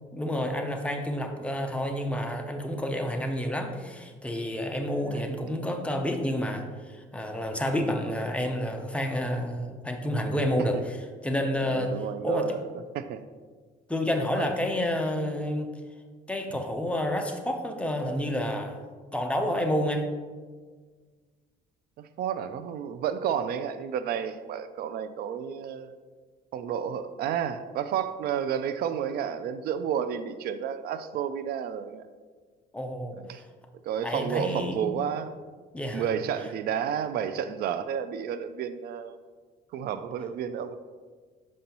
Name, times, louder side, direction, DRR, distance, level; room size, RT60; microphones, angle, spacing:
voice 1, 0.1-12.6 13.9-15.7 16.3-18.8 19.1-20.1 32.7-33.2 34.0-34.9 35.7-36.1, left 1 dB, 5° left, 4 dB, 0.6 m, -29 dB
voice 2, 11.7-12.6 12.9-13.2 14.3-14.5 22.2-25.9 26.5-32.0 33.3-33.4 33.8-35.4 35.9-39.1 39.7-40.8, right 8 dB, 65° right, 11 dB, 0.4 m, -31 dB
6.2 x 5.3 x 2.9 m, 1.5 s
cardioid pair, 110°, 17 cm